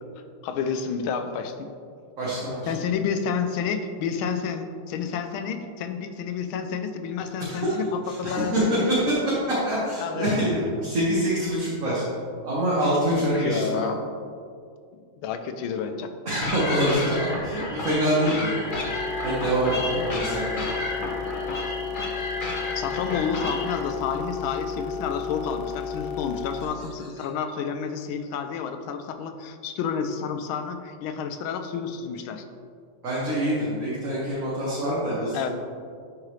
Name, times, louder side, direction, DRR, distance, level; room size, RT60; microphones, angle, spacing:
voice 1, 0.4-1.7 2.7-8.8 10.0-10.4 13.1-14.4 14.9-16.1 21.0-21.2 22.7-32.4 35.3-35.5, left 6 dB, 85° left, 7 dB, 1.5 m, -30 dB
voice 2, 2.2-2.7 7.4-7.8 8.1-12.0 12.4-13.9 16.3-18.8 19.2-20.6 33.0-35.5, right 1 dB, 45° right, -8 dB, 1.7 m, -25 dB
sound 1, 16.4-23.8, left 2 dB, 40° left, 0.7 m, -32 dB
sound 2, 18.7-26.6, left 6 dB, 70° left, 1.0 m, -33 dB
11.0 x 4.7 x 3.2 m, 2.2 s
omnidirectional pair, 2.2 m